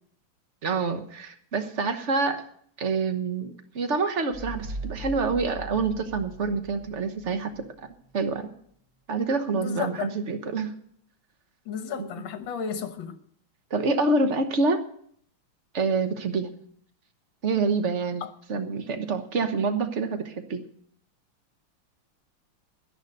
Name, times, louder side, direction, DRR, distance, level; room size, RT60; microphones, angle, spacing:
voice 1, 0.6-2.4 2.8-7.6 8.1-8.5 9.1-10.7 11.9-12.1 13.7-14.8 15.7-16.5 17.4-18.2 18.5-20.6, right 4 dB, 40° right, 1.1 m, -27 dB
sound 1, 4.3-7.7, right 1 dB, 25° right, 1.4 m, -39 dB
voice 2, 9.5-10.1 11.7-13.2 18.2-18.3, left 7 dB, 70° left, 1.8 m, -33 dB
11.0 x 11.0 x 6.6 m
omnidirectional pair, 2.3 m